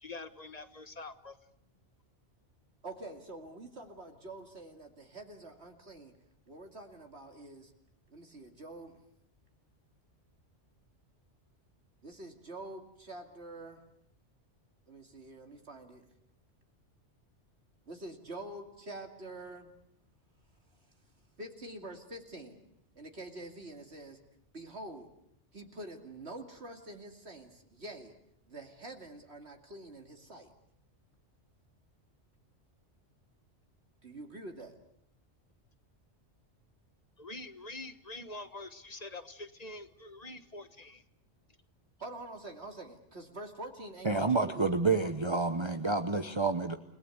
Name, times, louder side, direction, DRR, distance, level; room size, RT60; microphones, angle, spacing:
voice 1, 0.0-1.4 37.2-41.0, left 2 dB, 35° left, 11 dB, 1.4 m, -45 dB
voice 2, 2.8-6.1 6.5-7.7 8.1-9.0 12.0-13.8 14.9-16.1 17.9-19.7 21.4-22.6 23.0-24.2 24.5-25.1 25.5-28.1 28.5-30.5 34.0-34.8 42.0-44.7 45.0-45.1, right 2 dB, 65° right, 3 dB, 2.8 m, -46 dB
voice 3, 44.0-46.8, right 3 dB, 25° right, 7 dB, 1.0 m, -29 dB
29.5 x 19.0 x 8.0 m, 0.73 s
omnidirectional pair, 1.2 m